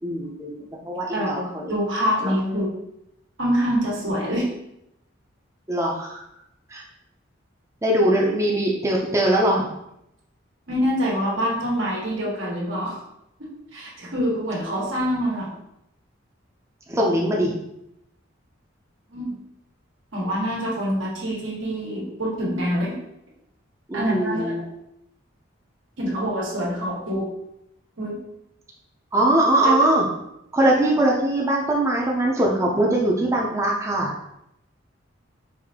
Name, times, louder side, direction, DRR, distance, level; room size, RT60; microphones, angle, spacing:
voice 1, 0.0-0.6 0.8-1.7 2.2-2.3 5.7-6.2 6.7-6.8 7.8-9.7 16.9-17.6 23.9-24.6 29.1-30.1 30.5-34.1, right 1 dB, 15° right, -2 dB, 0.5 m, -21 dB
voice 2, 1.1-2.7 3.4-4.5 10.7-13.0 13.4-15.5 19.1-19.3 20.1-22.9 23.9-24.5 26.0-27.3 28.0-28.2 29.6-29.9, equal, 80° right, -4 dB, 1.4 m, -25 dB
4.9 x 2.6 x 3.6 m, 0.80 s
head